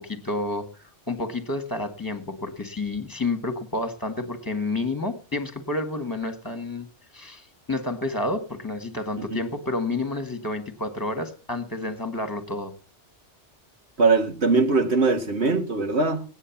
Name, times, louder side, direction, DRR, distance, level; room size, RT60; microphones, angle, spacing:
voice 1, 0.0-6.9 7.1-12.7, left 2 dB, 15° left, 1.9 m, -30 dB
voice 2, 14.0-16.2, right 3 dB, 65° right, 2.2 m, -21 dB
16.5 x 9.9 x 7.3 m
omnidirectional pair, 1.2 m